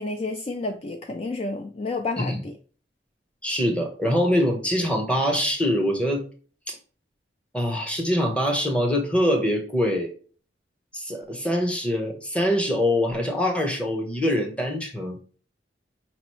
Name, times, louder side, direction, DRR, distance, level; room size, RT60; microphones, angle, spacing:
voice 1, 0.0-2.5, left 3 dB, 35° left, 5 dB, 0.4 m, -30 dB
voice 2, 3.4-6.2 6.7-6.8 7.5-10.1 10.9-15.2, equal, 5° left, 3 dB, 0.9 m, -24 dB
5.3 x 3.0 x 3.0 m, 0.40 s
head